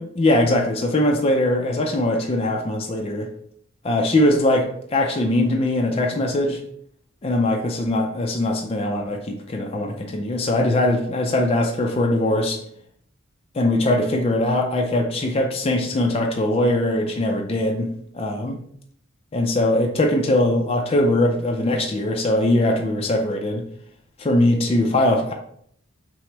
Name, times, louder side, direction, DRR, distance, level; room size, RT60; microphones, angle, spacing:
voice 1, 0.0-3.3 3.8-6.6 7.2-12.6 13.5-17.9 18.1-18.6 19.3-23.6 24.2-25.3, left 1 dB, 30° left, 2 dB, 0.4 m, -21 dB
5.7 x 2.0 x 3.3 m, 0.66 s
head